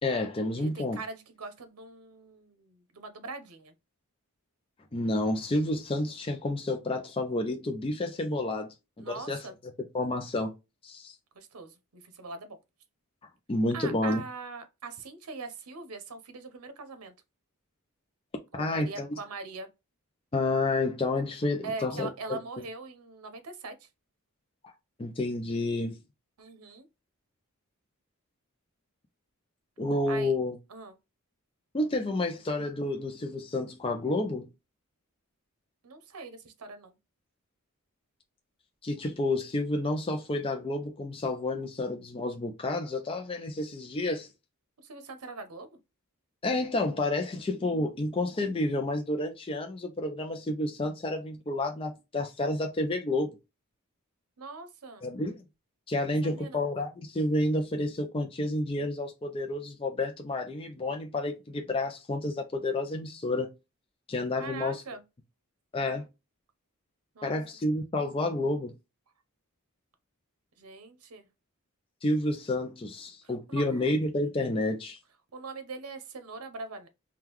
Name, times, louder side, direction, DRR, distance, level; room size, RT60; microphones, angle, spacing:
voice 1, 0.0-1.0 4.9-8.7 9.0-9.5 9.9-10.5 10.8-11.2 13.5-14.2 18.5-19.1 20.3-22.4 25.0-26.0 29.8-30.6 31.7-34.5 38.8-44.3 46.4-53.4 55.0-55.4 55.9-63.5 64.1-64.8 65.7-66.1 67.2-68.7 72.0-75.0, left 2 dB, 25° left, 0.4 m, -30 dB
voice 2, 0.6-3.7 9.0-9.5 11.3-12.6 13.7-17.1 18.5-19.7 21.6-23.9 26.4-26.9 30.1-30.3 30.7-31.0 35.8-37.0 44.8-45.7 54.4-55.1 56.2-56.6 64.4-65.0 67.1-67.4 70.6-71.3 73.2-73.8 75.3-76.9, right 4 dB, 85° right, 0.7 m, -42 dB
3.7 x 2.3 x 2.9 m
head